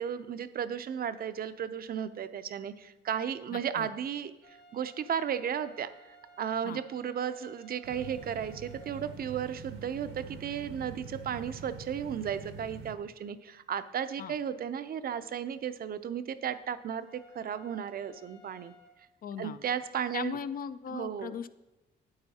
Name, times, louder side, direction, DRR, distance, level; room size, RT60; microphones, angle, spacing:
voice 1, 0.0-5.9 6.4-18.7 19.4-20.4 20.9-21.3, right 8 dB, 50° right, 12 dB, 0.5 m, -34 dB
voice 2, 3.5-3.9 6.6-6.8 14.2-14.3 19.2-19.6 20.1-21.5, left 7 dB, 45° left, 13 dB, 0.4 m, -38 dB
sound 1, 4.4-9.1 17.0-18.9, right 1 dB, 70° left, 1.6 m, -57 dB
sound 2, 7.8-12.9, right 5 dB, 90° right, 0.9 m, -45 dB
8.7 x 8.7 x 2.8 m, 1.1 s
cardioid pair, 90°, 20 cm